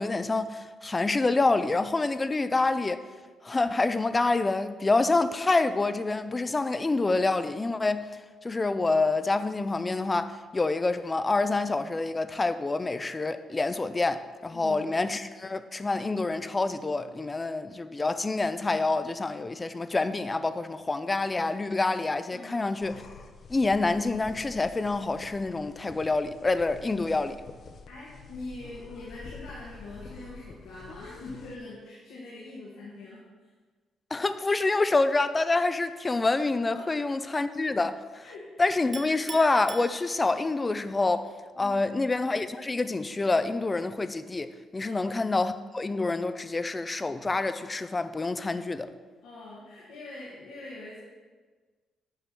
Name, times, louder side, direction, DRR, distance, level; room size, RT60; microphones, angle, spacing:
voice 1, 0.0-3.1 3.4-8.0 8.4-23.0 23.5-27.4 34.1-37.9 38.6-48.9, left 3 dB, 25° left, 0.5 m, -27 dB
voice 2, 22.3-22.7 27.9-33.5 36.7-37.1 37.7-37.8 38.2-38.7 41.5-41.9 44.8-45.1 49.2-51.0, left 2 dB, 90° left, 1.9 m, -43 dB
sound 1, 22.8-31.6, left 4 dB, 50° left, 0.8 m, -47 dB
Chink clink, 38.9-40.6, right 3 dB, 30° right, 1.7 m, -42 dB
9.3 x 4.7 x 6.8 m
cardioid pair, 90°, 0 cm